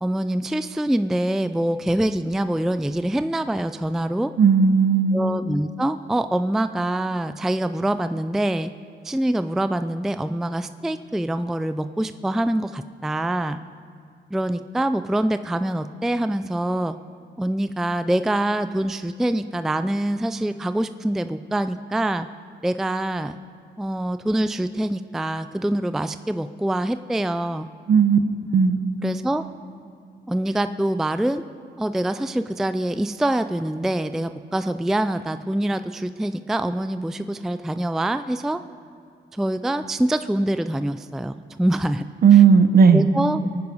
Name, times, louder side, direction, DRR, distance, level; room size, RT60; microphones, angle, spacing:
voice 1, 0.0-4.3 5.1-8.7 9.0-13.6 14.3-17.0 17.4-22.3 22.6-23.4 23.8-27.7 29.0-29.4 30.3-31.4 31.8-38.6 39.3-42.1 42.3-42.4 42.9-43.5, right 1 dB, ahead, 11 dB, 0.3 m, -25 dB
voice 2, 4.4-5.2 27.9-28.2 28.5-28.8 42.2-43.0, right 6 dB, 55° right, 9 dB, 1.0 m, -14 dB
23.5 x 9.6 x 5.4 m, 2.4 s
cardioid pair, 115°, 19 cm